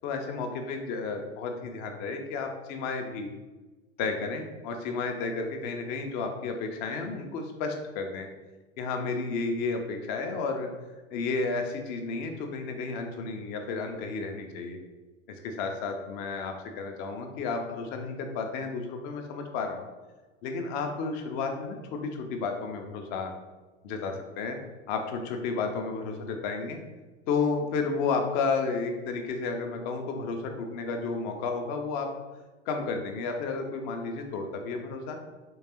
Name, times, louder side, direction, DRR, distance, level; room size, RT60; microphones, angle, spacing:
voice 1, 0.0-3.3 4.0-8.3 8.8-10.7 11.1-14.8 15.4-19.8 20.4-23.3 23.8-24.6 24.9-26.8 27.3-32.1 32.7-35.2, left 4 dB, 25° left, 4 dB, 0.4 m, -32 dB
3.7 x 3.2 x 2.8 m, 1.2 s
figure-of-eight pair, 90°, 38 cm